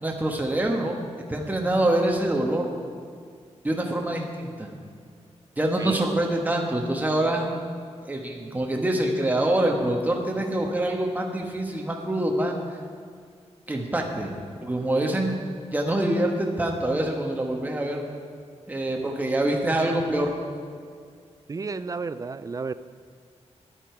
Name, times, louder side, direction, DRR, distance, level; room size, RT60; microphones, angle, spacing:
voice 1, 0.0-1.0 1.3-2.7 3.6-4.7 5.6-7.5 8.0-12.5 13.7-14.3 14.6-15.4 15.7-18.0 18.7-20.3, right 1 dB, 15° right, 1 dB, 1.5 m, -25 dB
voice 2, 21.5-22.7, right 4 dB, 30° right, 13 dB, 0.4 m, -32 dB
13.5 x 10.5 x 4.6 m, 2.2 s
wide cardioid pair, 115°, 12 cm